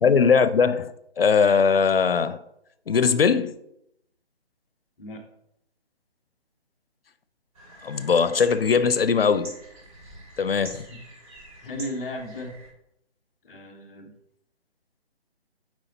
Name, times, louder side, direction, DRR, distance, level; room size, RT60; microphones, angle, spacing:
voice 1, 0.0-2.4 2.9-3.6 7.8-9.5 10.4-10.8, left 6 dB, 65° left, 0.6 m, -20 dB
sound 1, 7.5-12.7, right 1 dB, 35° right, 3.1 m, -45 dB
voice 2, 11.6-12.5 13.4-14.1, left 1 dB, 5° left, 0.5 m, -35 dB
7.7 x 4.9 x 4.1 m
figure-of-eight pair, 145°, 32 cm